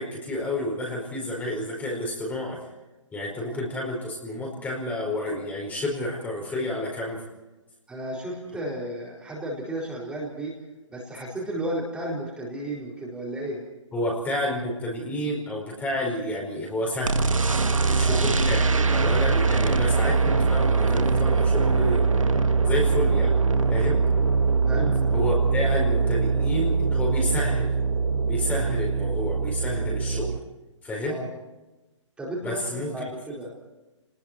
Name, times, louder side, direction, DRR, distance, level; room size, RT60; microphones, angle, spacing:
voice 1, 0.0-2.6 3.1-7.2 13.9-17.2 17.9-22.1 22.6-23.3 23.7-24.0 25.1-27.7 28.3-30.3 30.8-31.2 32.4-33.0, left 1 dB, 10° left, -2 dB, 4.9 m, -30 dB
voice 2, 7.9-10.6 10.9-13.6 18.0-18.3 24.7-25.0 31.1-31.3 32.2-33.5, right 1 dB, 5° right, -5 dB, 4.6 m, -33 dB
Synthetic Fx, 17.0-30.4, right 4 dB, 90° right, 1.9 m, -22 dB
29.5 x 20.5 x 4.6 m, 1.1 s
hypercardioid pair, 145°, 16 cm